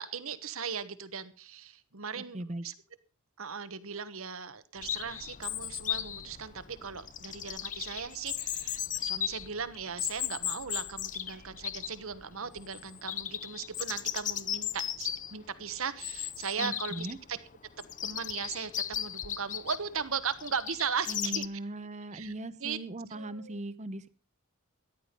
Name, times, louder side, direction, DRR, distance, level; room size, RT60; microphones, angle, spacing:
voice 1, 0.0-2.7 3.4-17.4 18.0-21.4 22.1-22.3 22.6-22.8 23.1-23.6, right 6 dB, 70° right, 13 dB, 1.2 m, -38 dB
voice 2, 2.2-2.6 16.6-17.2 21.1-24.1, right 1 dB, 30° right, 14 dB, 0.8 m, -39 dB
Chirp tweet, 4.8-21.5, left 10 dB, 35° left, 0.6 m, -37 dB
14.0 x 11.0 x 5.2 m, 0.35 s
head